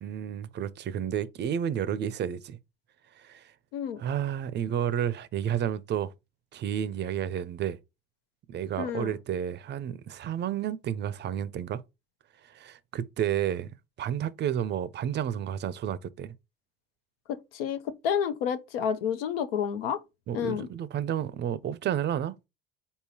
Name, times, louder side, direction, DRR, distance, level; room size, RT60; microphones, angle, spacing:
voice 1, 0.0-2.6 3.2-3.5 4.0-6.1 6.5-7.8 8.5-11.8 12.5-13.7 14.0-16.3 20.3-22.5, right 9 dB, 40° right, 0.5 m, -31 dB
voice 2, 8.8-9.1 17.3-20.0 20.3-20.7, left 8 dB, 80° left, 0.7 m, -30 dB
4.1 x 3.6 x 2.8 m
hypercardioid pair, 70°, 29 cm